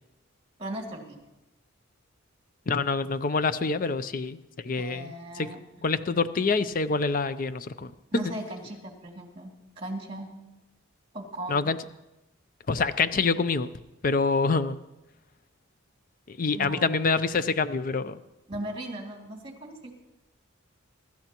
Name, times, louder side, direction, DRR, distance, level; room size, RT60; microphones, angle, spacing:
voice 1, 0.6-1.2 4.7-5.6 8.1-10.3 11.1-11.6 16.5-17.1 18.5-20.0, right 1 dB, 25° right, 1 dB, 2.5 m, -38 dB
voice 2, 2.7-5.5 5.8-8.3 11.5-11.8 12.7-13.7 14.0-14.8 16.3-18.2, left 4 dB, 40° left, 13 dB, 0.5 m, -26 dB
24.0 x 13.0 x 3.0 m, 0.98 s
head